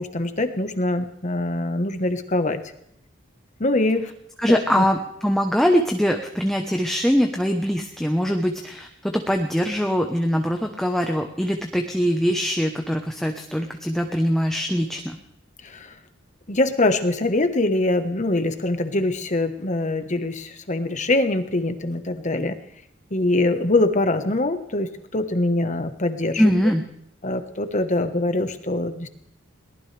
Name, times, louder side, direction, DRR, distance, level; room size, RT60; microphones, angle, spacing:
voice 1, 0.0-2.6 3.6-4.1 4.5-4.8 15.6-15.9 16.5-22.5 23.1-26.5 27.2-29.1, left 2 dB, 40° left, 8 dB, 1.3 m, -23 dB
voice 2, 4.4-15.2 26.4-26.8, equal, ahead, 3 dB, 1.0 m, -22 dB
22.0 x 18.5 x 3.4 m, 0.75 s
head